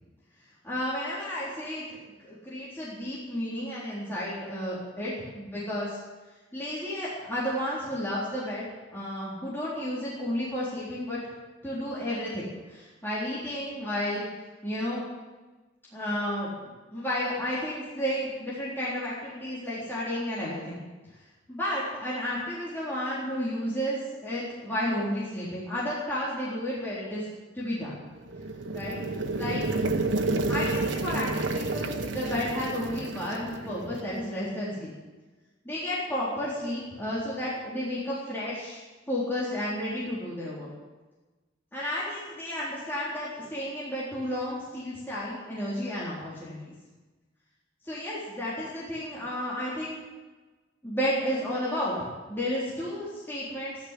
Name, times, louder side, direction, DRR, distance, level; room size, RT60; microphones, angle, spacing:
voice 1, 0.6-1.9 2.2-5.9 6.5-8.7 8.9-11.2 11.6-14.3 14.6-15.0 15.9-20.8 21.5-27.3 27.5-28.0 28.7-29.0 29.4-29.6 30.5-34.9 35.6-38.8 39.1-40.7 41.7-46.7 47.8-50.0 50.8-53.8, equal, 10° left, -8 dB, 3.9 m, -32 dB
sound 1, 28.2-34.2, right 2 dB, 90° right, 1.2 m, -30 dB
13.5 x 12.0 x 7.6 m, 1.2 s
head